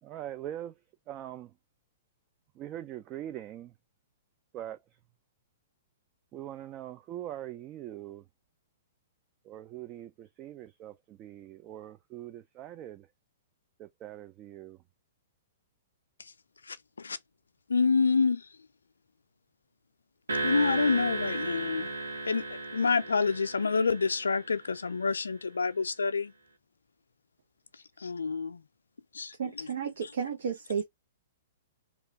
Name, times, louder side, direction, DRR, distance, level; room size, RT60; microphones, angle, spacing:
voice 1, 0.0-0.8 1.1-1.6 2.5-3.7 4.5-4.8 6.3-8.2 9.4-13.1 13.8-14.8, right 12 dB, 30° right, 0.4 m, -42 dB
voice 2, 16.7-17.2 17.7-18.4 20.4-21.9 22.3-22.4 22.7-26.3 28.0-28.6 29.1-29.3, left 4 dB, 85° left, 0.3 m, -27 dB
sound 1, 20.3-24.8, right 2 dB, 90° right, 1.1 m, -35 dB
voice 3, 29.4-30.8, right 7 dB, 70° right, 0.7 m, -32 dB
3.0 x 2.4 x 2.6 m
hypercardioid pair, 120°, 0 cm